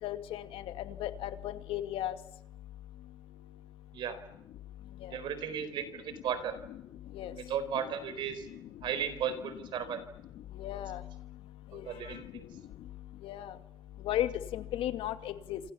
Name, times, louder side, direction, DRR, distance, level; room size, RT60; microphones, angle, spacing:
voice 1, 0.0-2.2 5.0-5.2 6.7-6.8 7.1-7.4 10.5-11.0 11.7-12.2 13.2-13.6 14.0-15.6, left 12 dB, 80° left, 10 dB, 2.3 m, -35 dB
voice 2, 5.1-6.6 7.4-8.5 8.8-10.0 11.7-12.4, right 8 dB, 60° right, 13 dB, 4.4 m, -35 dB
27.5 x 26.5 x 7.3 m, 0.81 s
cardioid pair, 175°, 9 cm